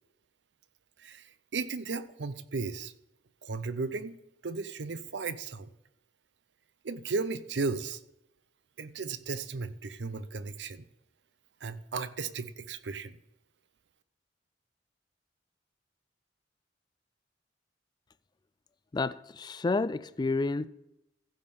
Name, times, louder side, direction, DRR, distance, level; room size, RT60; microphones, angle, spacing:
voice 1, 1.5-2.9 3.4-4.2 4.4-5.7 6.8-8.0 8.8-10.8 11.6-13.2, right 4 dB, 70° right, 0.6 m, -35 dB
voice 2, 18.9-20.7, left 3 dB, 25° left, 0.3 m, -30 dB
15.5 x 5.4 x 5.4 m
head